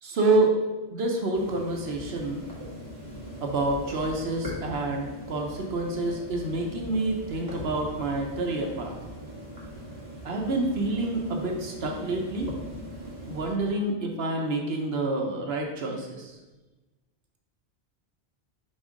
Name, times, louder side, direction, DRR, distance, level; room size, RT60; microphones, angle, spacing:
voice 1, 0.0-0.5 0.9-2.4 3.4-8.9 10.2-12.5 13.3-16.4, right 2 dB, 65° right, 1 dB, 1.0 m, -28 dB
sound 1, 1.3-13.5, equal, 15° right, 1.7 m, -40 dB
5.3 x 3.5 x 4.9 m, 1.2 s
omnidirectional pair, 1.1 m